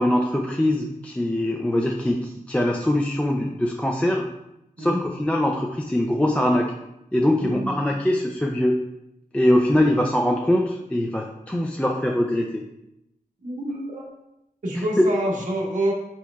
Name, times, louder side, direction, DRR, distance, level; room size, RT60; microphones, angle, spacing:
voice 1, 0.0-4.2 4.8-6.7 7.1-8.7 9.3-12.6 14.8-15.0, left 1 dB, 10° left, 0 dB, 0.4 m, -22 dB
voice 2, 7.4-7.8 13.4-14.1 14.6-15.9, right 1 dB, 60° right, -2 dB, 1.1 m, -27 dB
4.4 x 4.3 x 2.3 m, 0.85 s
wide cardioid pair, 85°, 15 cm